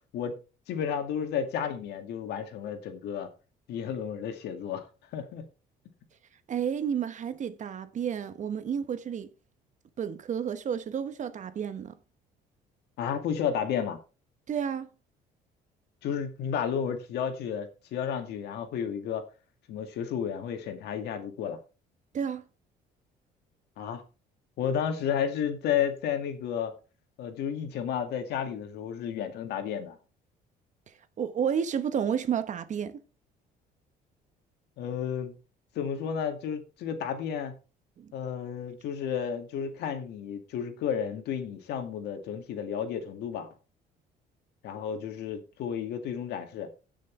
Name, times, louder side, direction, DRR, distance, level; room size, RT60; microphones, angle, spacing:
voice 1, 0.7-3.3 3.7-4.9 5.1-5.4 13.0-14.0 16.0-19.3 19.7-21.6 23.8-24.0 24.6-26.8 27.2-30.0 34.8-35.3 35.8-37.5 38.1-43.5 44.6-46.7, left 8 dB, 75° left, 2.1 m, -32 dB
voice 2, 6.5-9.3 10.0-12.0 14.5-14.9 22.1-22.4 31.2-33.0 38.0-38.1, right 8 dB, 45° right, 1.1 m, -31 dB
17.0 x 6.3 x 3.3 m
cardioid pair, 110°, 17 cm